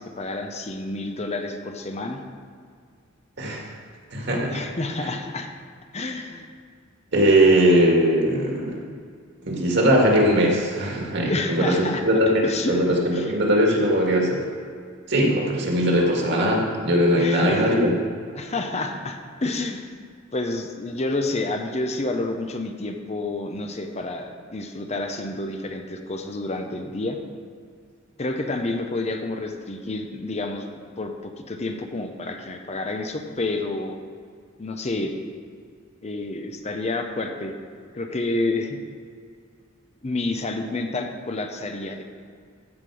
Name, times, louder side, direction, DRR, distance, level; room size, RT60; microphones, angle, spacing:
voice 1, 0.0-2.2 4.5-5.5 5.9-6.5 11.3-12.0 12.4-12.8 13.1-13.3 17.1-17.7 18.4-19.9 20.3-27.2 28.2-30.7 31.0-34.0 34.6-35.1 36.0-37.5 37.9-38.8 40.0-42.0, left 2 dB, 35° left, 5 dB, 0.7 m, -29 dB
voice 2, 4.1-4.6 7.1-8.8 9.4-12.3 12.7-14.4 15.1-17.9, right 1 dB, 60° right, -2 dB, 2.2 m, -20 dB
14.5 x 5.8 x 4.9 m, 2.1 s
head